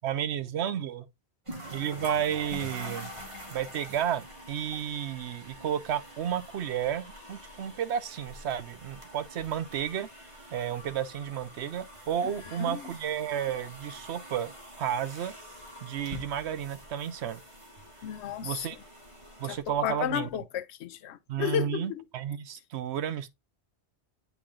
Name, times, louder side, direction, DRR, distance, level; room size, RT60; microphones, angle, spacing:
voice 1, 0.0-1.1 1.7-3.1 3.5-10.1 10.5-15.3 15.8-17.4 18.4-18.8 19.4-20.3 21.3-23.3, right 9 dB, 80° right, 1.0 m, -32 dB
sound 1, 1.5-20.3, equal, 30° right, 1.7 m, -46 dB
voice 2, 18.0-18.7 19.5-19.6 19.8-22.0, left 10 dB, 80° left, 0.9 m, -32 dB
8.2 x 3.3 x 3.6 m
omnidirectional pair, 1.1 m